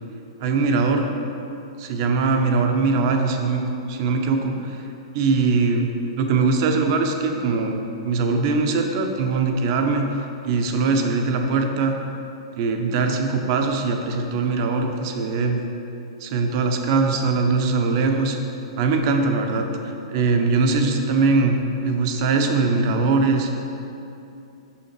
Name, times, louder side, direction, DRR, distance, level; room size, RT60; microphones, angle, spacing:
voice 1, 0.4-1.1 1.8-3.6 3.9-4.9 5.1-5.9 6.2-10.1 10.4-12.0 12.5-15.6 16.2-18.4 18.8-23.5, right 4 dB, 50° right, 4 dB, 0.8 m, -21 dB
6.4 x 5.7 x 4.6 m, 2.7 s
hypercardioid pair, 115°, 3 cm